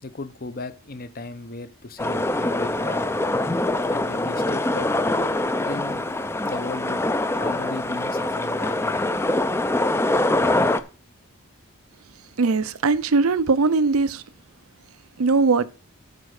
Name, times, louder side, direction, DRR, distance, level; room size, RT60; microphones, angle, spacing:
voice 1, 0.0-3.0 3.9-4.9 5.6-6.0 6.4-7.0 7.4-9.1, left 3 dB, 40° left, 0.7 m, -36 dB
sound 1, 2.0-10.8, left 2 dB, 10° left, 0.4 m, -24 dB
voice 2, 12.4-14.2 15.2-15.7, right 4 dB, 80° right, 0.6 m, -20 dB
9.2 x 4.3 x 6.5 m
head